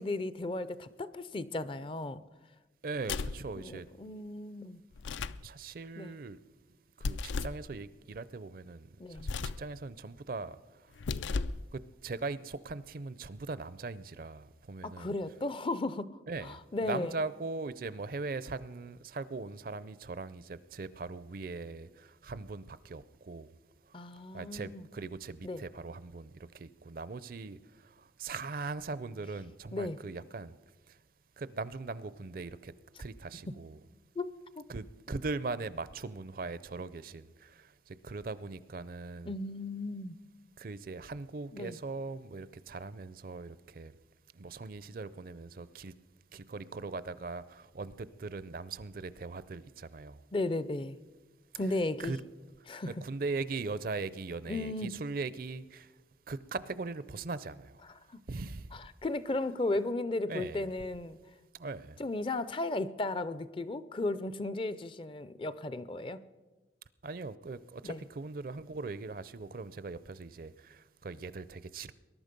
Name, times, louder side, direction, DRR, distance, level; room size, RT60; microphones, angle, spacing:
voice 1, 0.0-2.2 3.6-4.8 6.0-6.1 9.0-9.3 14.8-16.1 16.4-17.1 23.9-24.8 25.4-25.6 29.7-30.0 34.2-34.6 39.3-40.2 41.5-41.8 50.3-51.0 51.6-52.1 52.7-52.9 54.5-55.0 58.7-61.2 62.0-66.2 67.8-68.0, left 2 dB, 30° left, 0.4 m, -35 dB
voice 2, 2.8-3.9 5.4-6.4 7.0-11.0 11.7-15.1 16.3-23.6 23.8-30.6 30.9-31.0 31.4-32.7 33.0-33.8 34.7-39.3 40.6-43.9 44.3-45.9 46.3-50.2 52.0-52.2 52.8-56.0 56.3-58.7 60.3-60.7 61.5-62.0 67.0-71.9, right 3 dB, 50° right, 0.5 m, -40 dB
sound 1, 3.0-3.5 4.9-5.5 7.0-7.6 9.2-9.7 10.9-11.7, left 4 dB, 85° left, 0.5 m, -35 dB
20.5 x 11.5 x 5.2 m
head